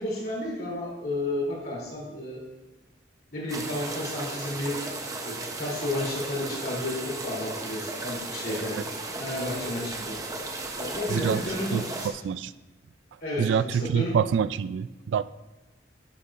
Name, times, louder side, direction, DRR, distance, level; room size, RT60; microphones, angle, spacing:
voice 1, 0.0-2.4 3.3-4.8 5.2-8.8 9.2-10.2 10.8-12.1 13.2-14.1, left 1 dB, 55° left, -4 dB, 3.0 m, -32 dB
sound 1, 3.5-12.1, right 2 dB, 20° right, 0.7 m, -35 dB
voice 2, 11.1-11.4 11.7-11.8 12.2-12.5 13.4-15.2, right 7 dB, 80° right, 15 dB, 0.3 m, -26 dB
11.0 x 8.2 x 2.5 m, 1.1 s
head